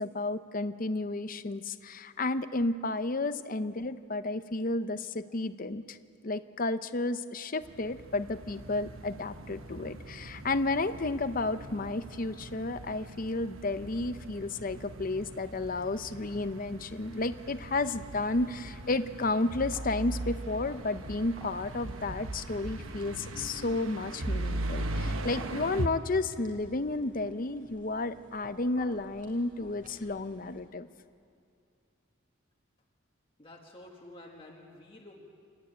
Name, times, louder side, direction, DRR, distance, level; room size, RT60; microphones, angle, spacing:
voice 1, 0.0-6.0 6.2-30.9, left 2 dB, 40° left, 11 dB, 0.7 m, -32 dB
sound 1, 7.6-25.9, right 1 dB, 75° right, 1.1 m, -39 dB
sound 2, 17.8-30.6, equal, 40° right, 4.2 m, -55 dB
voice 2, 33.4-35.3, left 1 dB, 25° left, -1 dB, 1.6 m, -50 dB
28.5 x 12.0 x 9.0 m, 2.4 s
head